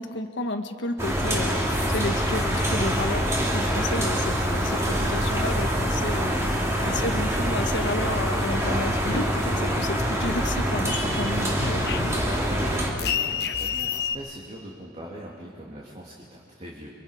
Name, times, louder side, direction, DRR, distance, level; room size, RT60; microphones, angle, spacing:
voice 1, 0.0-11.9, left 2 dB, 75° left, 6 dB, 1.6 m, -32 dB
sound 1, 1.0-12.9, equal, 15° right, 2.7 m, -25 dB
voice 2, 6.7-7.2 8.6-9.2 12.1-17.0, right 1 dB, 35° right, -3 dB, 2.5 m, -40 dB
sound 2, 9.1-10.4 10.8-14.1, left 6 dB, 55° left, 1.0 m, -31 dB
29.5 x 25.0 x 5.1 m, 2.5 s
head